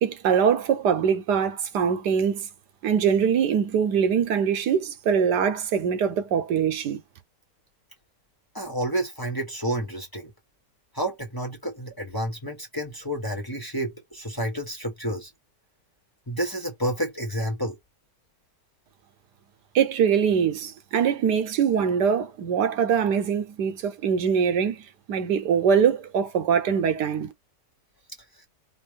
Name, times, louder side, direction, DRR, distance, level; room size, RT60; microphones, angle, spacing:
voice 1, 0.0-2.5 2.8-7.0 19.7-27.3, right 7 dB, 80° right, 1.4 m, -23 dB
voice 2, 8.5-10.3 10.9-15.3 16.3-17.8 28.3-28.4, right 1 dB, 15° left, 1.1 m, -30 dB
5.4 x 2.5 x 3.5 m
omnidirectional pair, 1.8 m